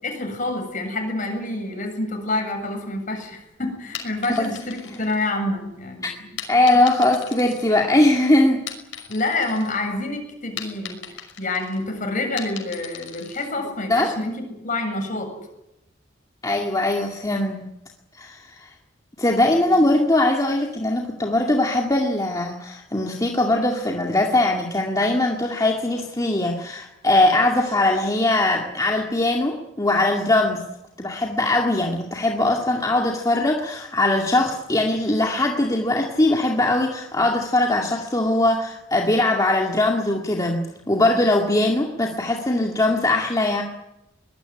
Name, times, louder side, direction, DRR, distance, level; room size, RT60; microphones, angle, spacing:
voice 1, 0.0-6.3 9.1-15.3, left 2 dB, 45° left, 4 dB, 7.9 m, -28 dB
sound 1, 3.8-5.7 6.4-8.2 8.5-9.8 10.1-13.6, left 8 dB, 75° left, 5.8 m, -38 dB
voice 2, 6.5-8.6 13.9-14.1 16.4-17.6 18.1-18.7 19.2-30.7 31.0-43.6, left 2 dB, 20° left, 1 dB, 2.2 m, -21 dB
23.5 x 20.0 x 9.9 m, 0.91 s
head